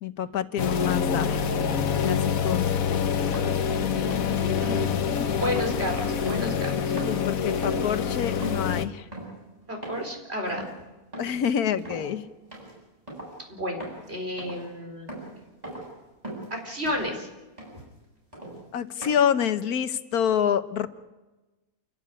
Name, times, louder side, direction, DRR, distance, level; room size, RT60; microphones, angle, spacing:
voice 1, 0.0-1.5 2.0-2.7 4.9-5.8 7.1-9.1 11.2-12.3 18.7-20.9, left 8 dB, 85° left, 12 dB, 1.5 m, -27 dB
sound 1, 0.6-8.9, left 7 dB, 70° left, 1.5 m, -26 dB
sound 2, 3.3-3.6 4.1-4.4 4.8-5.1 5.6-6.7 7.0-7.3 7.6-8.0 8.4-8.7 9.1-9.4 9.8-10.1 10.5-10.7 11.1-11.5 11.8-12.1 12.5-12.7 13.1-13.4 13.8-14.1 14.4-14.7 15.1-15.3 15.6-15.9 16.2-16.5 16.9-17.1 17.6-17.8 18.3-18.6 19.0-19.1, right 1 dB, 25° right, 8.2 m, -38 dB
voice 2, 3.9-4.9 5.3-6.7 9.7-10.7 13.5-15.1 16.5-17.3, equal, 45° right, 3 dB, 4.3 m, -32 dB
29.0 x 12.5 x 9.9 m, 1.1 s
omnidirectional pair, 1.6 m